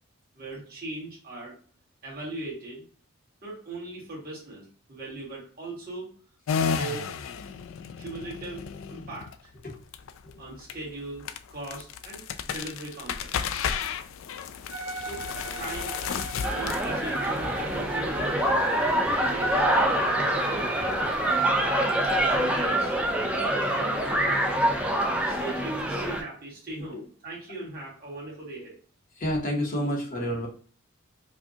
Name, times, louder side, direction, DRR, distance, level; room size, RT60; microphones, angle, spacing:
voice 1, 0.3-1.6 2.0-2.8 3.4-6.1 6.6-7.1 8.0-9.5 10.4-13.7 15.1-15.3 15.6-15.9 16.5-18.6 19.2-21.0 22.0-23.0 23.7-24.3 25.2-28.8, right 2 dB, 45° right, -4 dB, 1.7 m, -39 dB
sound 1, 6.5-20.7, left 6 dB, 70° left, 0.3 m, -34 dB
Bowed string instrument, 14.7-23.0, right 3 dB, 70° right, 1.3 m, -39 dB
sound 2, 16.4-26.2, right 1 dB, 5° right, 0.4 m, -25 dB
voice 2, 29.2-30.5, equal, 40° left, -1 dB, 0.9 m, -29 dB
4.7 x 2.2 x 2.8 m, 0.42 s
head